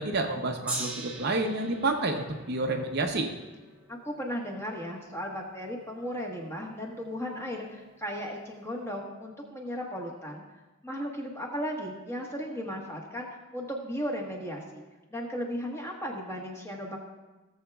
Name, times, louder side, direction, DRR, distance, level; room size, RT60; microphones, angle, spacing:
voice 1, 0.0-3.3, right 2 dB, 45° right, 3 dB, 0.7 m, -29 dB
Gong, 0.7-7.0 7.8-7.9, right 1 dB, 5° right, 1.2 m, -42 dB
voice 2, 3.9-10.4 10.8-13.3 13.5-14.8 15.1-17.0, equal, 10° left, -2 dB, 1.3 m, -36 dB
17.5 x 7.2 x 2.3 m, 1.2 s
head